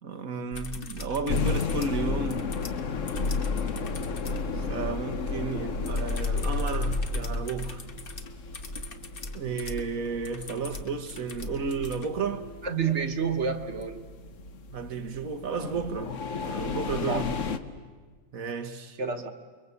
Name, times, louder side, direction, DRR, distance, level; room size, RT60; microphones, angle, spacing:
voice 1, 0.0-2.5 4.5-7.8 9.3-12.5 14.7-17.3 18.3-19.0, right 5 dB, 90° right, 1.8 m, -33 dB
sound 1, 0.5-4.5 5.8-12.1 13.8-13.9, left 2 dB, 40° left, 1.5 m, -40 dB
sound 2, 1.3-17.6, left 4 dB, 65° left, 1.4 m, -33 dB
voice 2, 12.6-14.0 17.1-17.2 19.0-19.3, right 6 dB, 55° right, 1.7 m, -29 dB
29.0 x 23.0 x 8.3 m
omnidirectional pair, 1.4 m